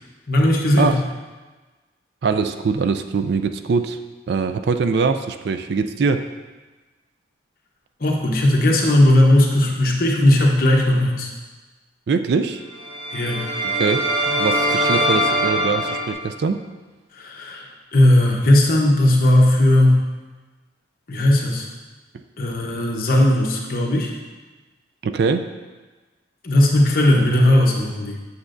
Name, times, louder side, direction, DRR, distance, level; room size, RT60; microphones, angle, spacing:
voice 1, 0.3-1.0 8.0-11.3 13.1-13.4 17.1-20.1 21.1-21.7 22.4-24.1 26.4-28.2, left 1 dB, 45° left, -1 dB, 0.9 m, -17 dB
voice 2, 2.2-4.0 4.3-6.3 12.1-12.6 13.6-16.6 25.0-25.5, right 4 dB, 55° right, 8 dB, 0.3 m, -22 dB
sound 1, 12.7-16.1, equal, 30° right, 1.7 m, -22 dB
8.2 x 6.5 x 2.6 m, 1.3 s
head